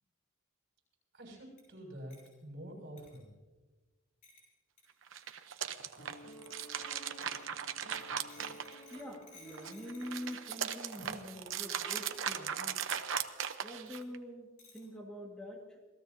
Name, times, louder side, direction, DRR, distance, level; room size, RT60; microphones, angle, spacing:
voice 1, 1.1-3.3, equal, 55° right, 0 dB, 6.6 m, -47 dB
sound 1, 1.6-1.7 2.1-2.3 3.0-3.2 4.2-4.5 4.8-4.9 5.2-5.4 6.3-7.5 7.9-11.2 12.0-12.3 12.7-12.8 13.1-13.2 13.6-14.0 14.6-14.9, left 3 dB, 40° left, 6.9 m, -59 dB
sound 2, 5.0-9.2 9.5-14.2, right 8 dB, 75° right, 0.9 m, -38 dB
Piano, 6.0-11.3, equal, 65° left, 2.9 m, -54 dB
voice 2, 8.9-12.8 13.6-15.8, equal, 5° left, -2 dB, 1.8 m, -45 dB
27.0 x 18.5 x 2.8 m, 1.3 s
head